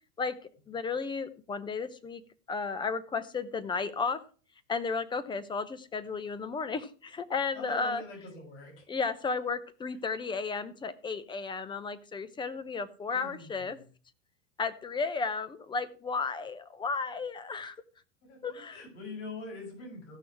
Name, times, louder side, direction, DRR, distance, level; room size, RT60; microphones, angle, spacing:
voice 1, 0.7-2.2 2.5-4.2 4.7-8.0 8.9-13.8 14.6-17.8 18.4-18.8, left 4 dB, 10° left, 14 dB, 0.7 m, -33 dB
voice 2, 7.5-8.7 13.1-13.8 18.2-20.2, left 3 dB, 60° left, 0 dB, 6.4 m, -43 dB
15.5 x 6.1 x 4.7 m, 0.39 s
supercardioid pair, 135°, 40 cm